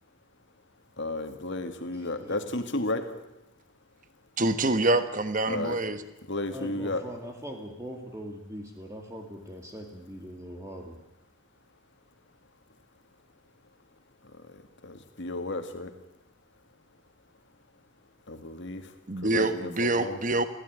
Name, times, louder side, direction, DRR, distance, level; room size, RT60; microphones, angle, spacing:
voice 1, 1.0-3.2 5.5-5.9 6.3-7.0 14.8-15.9 18.3-18.8 19.2-20.2, left 2 dB, 60° left, 7 dB, 2.2 m, -33 dB
voice 2, 1.9-2.4 6.5-11.0, equal, 15° right, 2 dB, 2.2 m, -41 dB
voice 3, 4.4-6.0 19.1-20.5, right 2 dB, 40° right, 11 dB, 1.4 m, -26 dB
22.5 x 16.0 x 9.5 m, 0.90 s
head